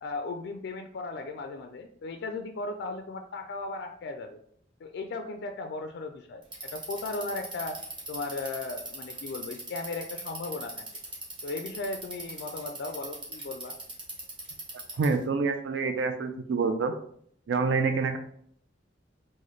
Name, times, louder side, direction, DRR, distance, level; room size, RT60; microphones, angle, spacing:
voice 1, 0.0-4.4 4.8-7.8 8.1-10.8 11.4-13.7, left 3 dB, 60° left, 5 dB, 0.3 m, -36 dB
Bicycle, 6.4-15.2, right 2 dB, 25° right, 0.9 m, -40 dB
voice 2, 15.0-16.9 17.5-18.2, right 4 dB, 70° right, 7 dB, 0.3 m, -27 dB
3.9 x 2.1 x 3.1 m, 0.63 s
head